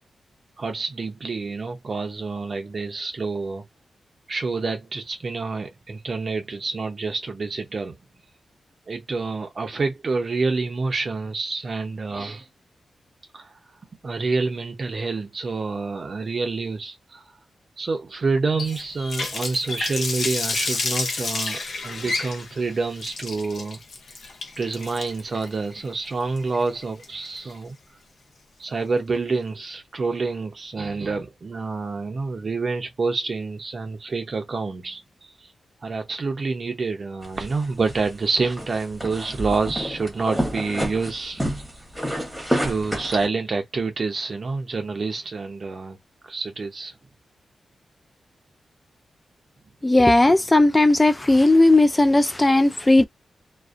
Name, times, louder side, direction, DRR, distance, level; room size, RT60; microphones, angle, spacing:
voice 1, 0.6-3.7 4.3-8.0 8.9-12.5 13.3-13.5 14.0-17.3 17.8-23.8 24.6-27.8 28.6-35.5 35.8-41.5 42.6-46.0 46.2-46.9, right 4 dB, 45° right, 0.5 m, -27 dB
Water tap faucet, 18.6-27.5, left 3 dB, 65° left, 0.6 m, -30 dB
sound 1, 37.2-43.3, equal, ahead, 1.0 m, -30 dB
voice 2, 49.8-53.1, left 2 dB, 15° left, 0.3 m, -16 dB
2.5 x 2.0 x 2.4 m
wide cardioid pair, 130°, 0 cm